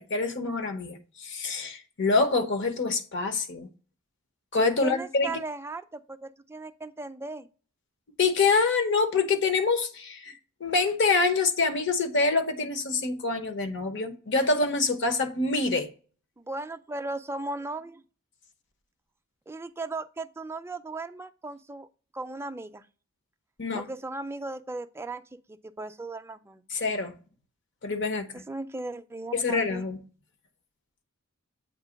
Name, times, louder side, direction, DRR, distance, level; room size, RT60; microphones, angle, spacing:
voice 1, 0.0-3.7 4.5-5.3 8.2-15.9 23.6-23.8 26.7-27.1 27.8-28.3 29.3-30.0, left 3 dB, 60° left, 0.9 m, -26 dB
voice 2, 4.8-7.5 16.4-18.0 19.5-21.9 22.1-22.8 23.7-26.6 28.3-29.8, right 2 dB, 10° right, 0.3 m, -37 dB
8.1 x 2.9 x 5.0 m
head